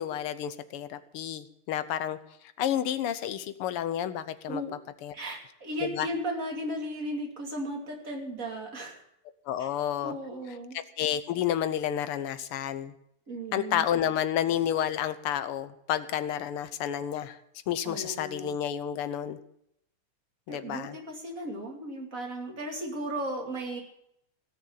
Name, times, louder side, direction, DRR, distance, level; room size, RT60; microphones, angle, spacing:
voice 1, 0.0-2.2 2.6-4.6 5.0-5.1 5.9-6.1 9.5-10.2 11.0-12.9 13.5-17.4 17.7-19.4 20.5-21.0, left 10 dB, 85° left, 12 dB, 1.8 m, -30 dB
voice 2, 5.1-9.0 9.6-9.7 10.0-10.8 13.3-13.9 17.8-18.5 20.5-23.8, right 1 dB, 40° right, 1 dB, 3.1 m, -35 dB
17.0 x 6.6 x 8.8 m, 0.75 s
omnidirectional pair, 2.4 m